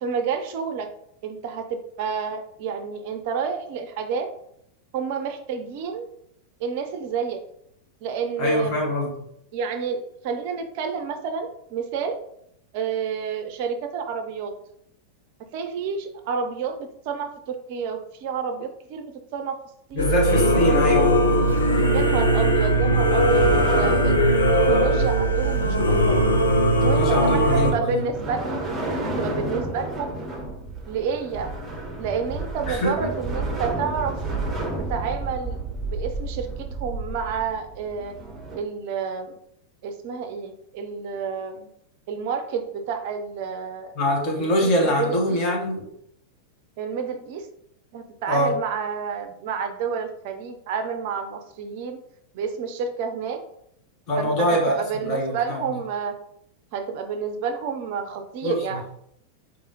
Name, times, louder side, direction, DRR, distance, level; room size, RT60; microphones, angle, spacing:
voice 1, 0.0-0.9 1.2-4.3 4.9-6.1 6.6-7.4 8.0-8.9 9.5-12.2 12.7-14.5 15.5-19.6 19.9-20.1 20.6-21.1 21.9-26.2 26.8-28.6 28.9-30.1 30.9-31.5 32.0-34.1 34.9-38.1 38.5-39.4 39.8-41.7 42.1-43.9 44.4-45.4 46.8-47.5 47.9-52.0 52.3-53.4 54.2-56.2 56.7-58.8, right 6 dB, 45° right, 7 dB, 0.4 m, -30 dB
voice 2, 8.4-9.3 19.9-21.1 26.9-28.0 32.7-33.1 43.9-45.9 48.3-48.5 54.1-54.7 55.0-55.6 58.4-58.6, equal, 40° left, 0 dB, 1.2 m, -23 dB
sound 1, 19.9-38.6, right 2 dB, 20° right, 0.7 m, -32 dB
Singing / Musical instrument, 20.0-27.7, right 1 dB, 75° left, 0.6 m, -19 dB
4.7 x 2.6 x 2.9 m, 0.72 s
figure-of-eight pair, 90°, 0 cm